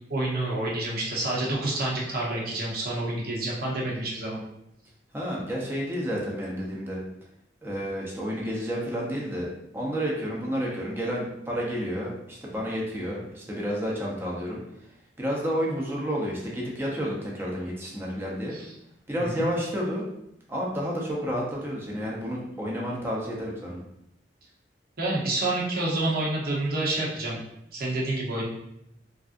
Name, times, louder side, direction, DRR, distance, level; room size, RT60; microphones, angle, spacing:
voice 1, 0.1-4.4 18.5-18.7 19.2-19.5 25.0-27.4 27.7-28.5, right 2 dB, 60° right, -3 dB, 0.8 m, -28 dB
voice 2, 5.1-7.0 7.6-9.5 9.7-14.6 15.2-18.5 19.1-20.0 20.5-23.8, equal, 15° right, -4 dB, 0.7 m, -30 dB
3.3 x 2.5 x 2.5 m, 0.81 s
head